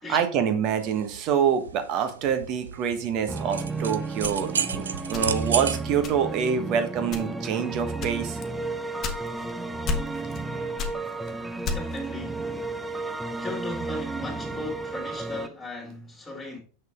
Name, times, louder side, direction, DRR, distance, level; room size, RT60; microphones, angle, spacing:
voice 1, 0.1-8.4, right 7 dB, 40° right, 1.3 m, -26 dB
sound 1, 0.7-5.8, right 7 dB, 70° right, 0.6 m, -33 dB
sound 2, 3.3-15.5, right 3 dB, 10° right, 0.6 m, -33 dB
sound 3, 4.2-5.6 6.0-6.5 7.0-7.5 8.0-9.5 9.8-10.5 10.8-12.1, left 4 dB, 30° left, 1.2 m, -32 dB
voice 2, 11.6-12.5 13.4-16.6, left 2 dB, 10° left, 2.5 m, -37 dB
6.9 x 6.4 x 3.6 m
figure-of-eight pair, 90°, 0 cm